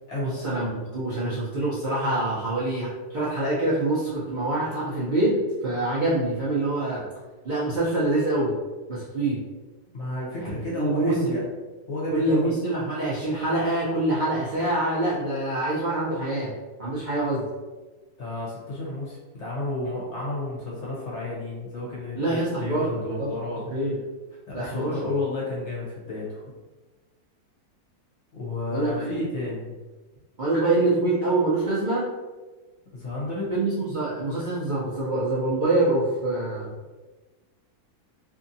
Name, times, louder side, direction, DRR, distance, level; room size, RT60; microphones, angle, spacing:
voice 1, 0.2-5.4 5.6-7.0 7.4-8.5 8.9-9.4 10.4-11.2 12.1-16.5 16.8-17.4 22.2-23.3 23.7-24.0 24.5-25.0 28.7-29.2 30.4-32.1 33.5-36.7, right 2 dB, 65° right, -8 dB, 0.4 m, -25 dB
voice 2, 9.9-11.4 11.9-12.6 18.2-23.7 24.5-26.4 28.3-29.7 32.9-33.5, left 2 dB, 55° left, -4 dB, 0.9 m, -31 dB
2.8 x 2.5 x 2.6 m, 1.2 s
omnidirectional pair, 1.7 m